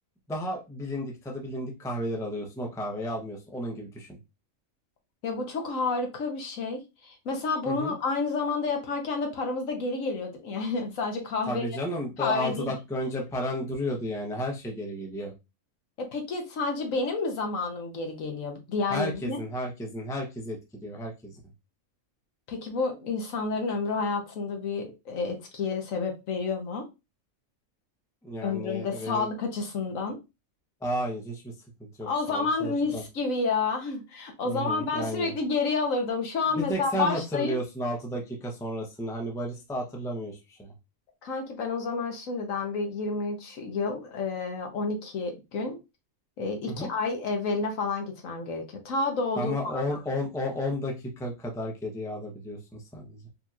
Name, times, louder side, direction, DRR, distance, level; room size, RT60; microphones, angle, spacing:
voice 1, 0.3-4.1 7.7-8.0 11.5-15.3 18.9-21.4 28.2-29.3 30.8-31.5 31.8-33.0 34.4-35.3 36.5-40.7 46.7-46.9 49.4-53.3, equal, 5° left, 0 dB, 0.6 m, -33 dB
voice 2, 5.2-11.7 12.2-12.7 16.0-19.4 22.5-26.8 28.4-30.2 32.0-37.6 41.2-45.8 46.4-50.0, left 4 dB, 70° left, 3 dB, 1.3 m, -30 dB
4.3 x 2.9 x 2.4 m, 0.25 s
omnidirectional pair, 1.5 m